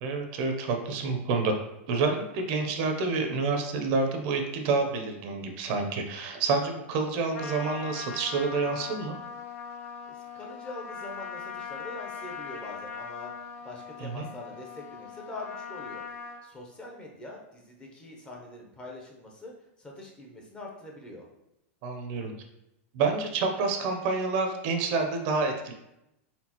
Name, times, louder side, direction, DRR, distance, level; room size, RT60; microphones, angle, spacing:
voice 1, 0.0-1.6 1.9-9.1 14.0-14.2 21.8-22.3 22.9-25.7, right 4 dB, 45° right, 4 dB, 0.6 m, -28 dB
Trumpet, 7.3-16.4, left 6 dB, 80° left, 0.7 m, -40 dB
voice 2, 10.1-16.0 16.4-19.5 19.8-21.3, left 2 dB, 15° left, -1 dB, 0.7 m, -44 dB
4.3 x 3.7 x 2.9 m, 0.87 s
supercardioid pair, 150°, 7 cm